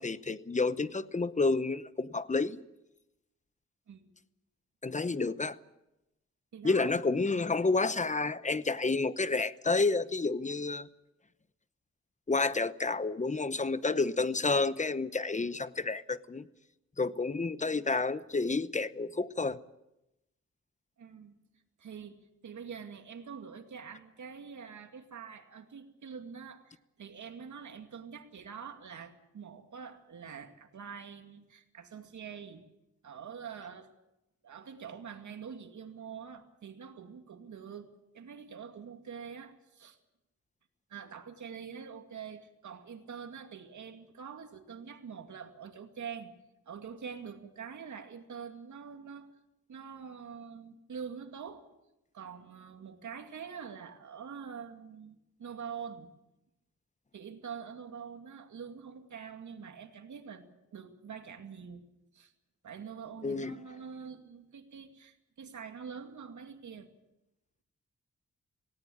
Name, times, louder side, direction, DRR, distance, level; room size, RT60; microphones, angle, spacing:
voice 1, 0.0-2.6 4.8-5.6 6.6-10.9 12.3-16.4 17.0-19.6 63.2-63.6, left 3 dB, 25° left, 15 dB, 0.9 m, -30 dB
voice 2, 6.5-6.9 21.0-21.3 21.8-32.6 33.0-33.9 34.4-40.0 40.9-46.4 46.7-49.3 49.7-51.7 52.1-56.1 57.1-61.8 62.1-62.3 62.6-66.9, right 6 dB, 80° right, 5 dB, 2.3 m, -45 dB
18.5 x 17.5 x 8.6 m, 0.91 s
cardioid pair, 85°, 29 cm